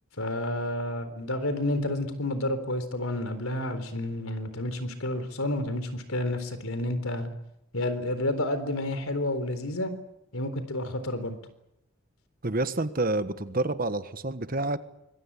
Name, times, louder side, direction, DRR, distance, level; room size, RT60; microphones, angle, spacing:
voice 1, 0.2-7.3 7.7-9.9 10.3-11.4, left 1 dB, 85° left, 11 dB, 3.9 m, -30 dB
voice 2, 12.4-14.8, right 2 dB, 40° right, 11 dB, 1.3 m, -28 dB
26.0 x 21.5 x 8.5 m, 0.85 s
head